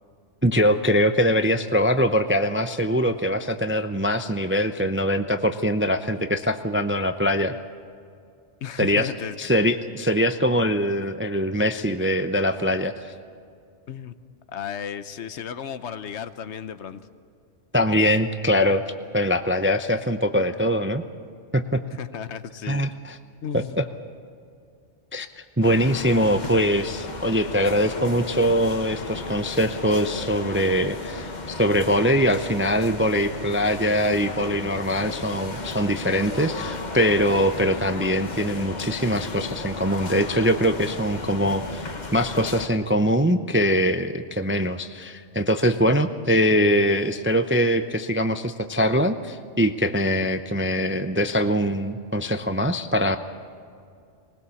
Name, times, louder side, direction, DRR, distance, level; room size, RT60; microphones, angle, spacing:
voice 1, 0.4-7.6 8.8-9.1 9.4-13.1 17.7-18.8 19.1-21.0 21.5-21.8 22.7-23.2 23.5-23.8 25.1-25.3 25.6-41.8 42.1-53.2, equal, 15° right, 8 dB, 0.4 m, -22 dB
voice 2, 8.6-9.4 13.9-14.1 14.5-17.0 21.9-22.8 23.4-23.9, left 8 dB, 70° left, 12 dB, 1.1 m, -34 dB
sound 1, 25.6-42.7, left 3 dB, 40° left, 1.3 m, -34 dB
20.0 x 20.0 x 7.1 m, 2.3 s
omnidirectional pair, 1.2 m